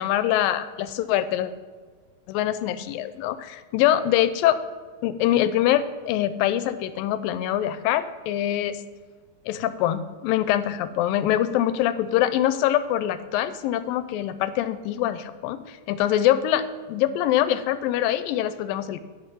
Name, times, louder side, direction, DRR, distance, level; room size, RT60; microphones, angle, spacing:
voice 1, 0.0-1.5 2.3-4.6 5.0-8.8 9.5-19.0, left 12 dB, 90° left, 13 dB, 2.3 m, -24 dB
11.0 x 6.1 x 5.5 m, 1.5 s
omnidirectional pair, 4.0 m